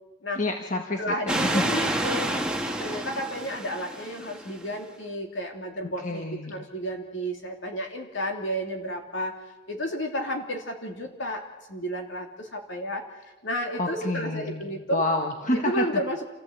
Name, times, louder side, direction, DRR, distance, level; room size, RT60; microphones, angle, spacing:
voice 1, 0.3-1.6 6.0-6.5 13.8-15.8, left 2 dB, 35° left, 3 dB, 1.3 m, -28 dB
voice 2, 1.0-2.4 2.8-9.3 9.7-11.4 11.7-13.0 13.4-15.1 15.5-16.2, equal, 60° left, 2 dB, 3.2 m, -32 dB
sound 1, 1.3-4.6, right 1 dB, 5° right, 1.4 m, -29 dB
28.0 x 15.0 x 8.2 m, 1.1 s
head